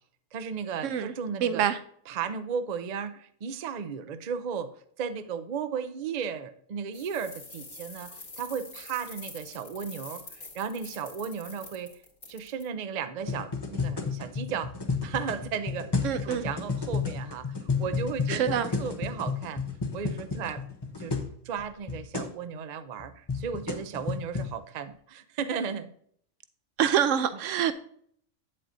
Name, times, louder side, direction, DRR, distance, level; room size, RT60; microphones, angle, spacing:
voice 1, 0.3-1.6 2.1-4.7 5.0-11.9 12.3-14.7 15.0-19.6 19.9-20.7 21.0-21.1 21.4-25.9, right 6 dB, 45° right, 0.6 m, -35 dB
voice 2, 0.8-1.1 1.4-1.8 16.0-16.5 18.3-18.7 26.8-27.7, right 9 dB, 80° right, 0.9 m, -26 dB
sound 1, 6.9-12.6, left 3 dB, 85° left, 2.4 m, -45 dB
sound 2, 13.2-21.3 21.6-21.7 21.9-22.3 23.0-24.5, left 4 dB, 25° left, 0.8 m, -32 dB
8.8 x 7.6 x 2.6 m
omnidirectional pair, 1.3 m